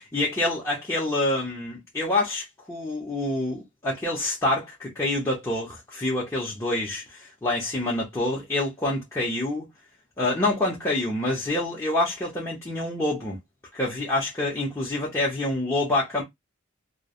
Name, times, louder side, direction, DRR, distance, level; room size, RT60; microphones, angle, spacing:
voice 1, 0.0-9.7 10.2-13.4 13.7-16.2, left 2 dB, 15° left, 0.8 m, -27 dB
3.3 x 2.1 x 2.4 m
head